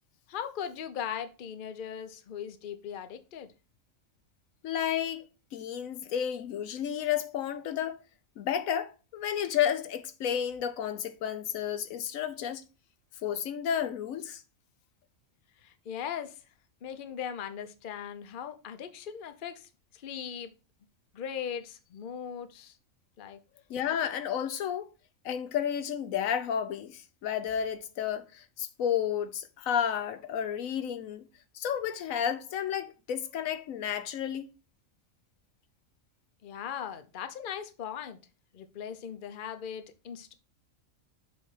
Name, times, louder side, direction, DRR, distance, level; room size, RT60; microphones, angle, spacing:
voice 1, 0.3-3.5 15.6-16.4 16.8-20.5 21.1-22.8 23.2-23.4 36.4-38.2 38.5-40.3, left 8 dB, 50° left, 0.8 m, -39 dB
voice 2, 4.6-5.2 5.5-8.0 8.4-12.6 13.2-14.4 23.7-24.9 25.2-31.3 31.5-34.5, left 9 dB, 90° left, 1.1 m, -31 dB
7.0 x 3.4 x 4.8 m
omnidirectional pair, 1.4 m